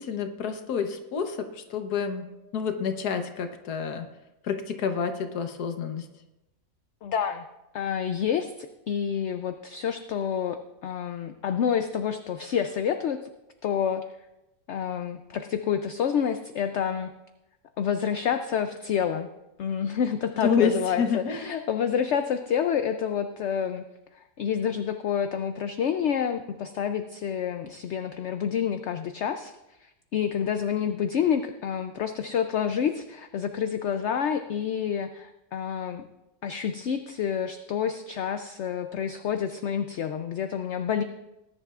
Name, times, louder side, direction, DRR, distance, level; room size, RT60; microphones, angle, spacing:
voice 1, 0.0-2.2 2.5-4.1 4.4-6.1 20.4-21.5, left 6 dB, 85° left, 6 dB, 1.5 m, -28 dB
voice 2, 7.0-7.4 7.7-13.2 13.6-14.0 14.7-17.1 17.8-19.3 19.6-23.8 24.1-29.5 29.8-36.0 36.4-41.0, left 8 dB, 65° left, 7 dB, 0.7 m, -28 dB
19.5 x 10.5 x 2.4 m, 0.96 s
omnidirectional pair, 1.6 m